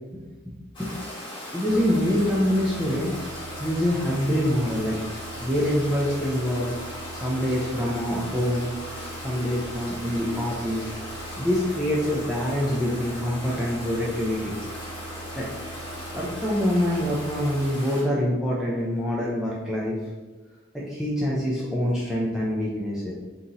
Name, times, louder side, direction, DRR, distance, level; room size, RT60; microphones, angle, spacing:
Stream, 0.7-18.0, left 1 dB, 25° left, 1.3 m, -38 dB
voice 1, 1.5-3.1 3.6-5.0 5.4-6.7 7.1-8.7 9.2-10.9 11.4-14.5 15.3-15.5 16.1-20.0 20.7-23.1, equal, 5° right, -6 dB, 0.5 m, -25 dB
sound 1, 1.7-17.7, right 3 dB, 80° right, 0.4 m, -42 dB
3.8 x 2.9 x 4.0 m, 1.2 s
head